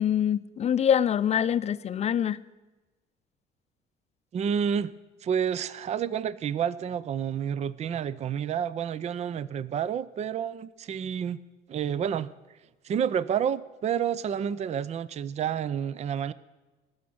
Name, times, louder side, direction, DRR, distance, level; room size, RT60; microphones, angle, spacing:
voice 1, 0.0-2.4, left 9 dB, 40° left, 15 dB, 0.5 m, -25 dB
voice 2, 4.3-4.9 5.2-11.4 11.7-12.3 12.8-16.3, right 8 dB, 40° right, 18 dB, 0.5 m, -29 dB
18.5 x 6.4 x 8.5 m, 1.2 s
cardioid pair, 110°, 17 cm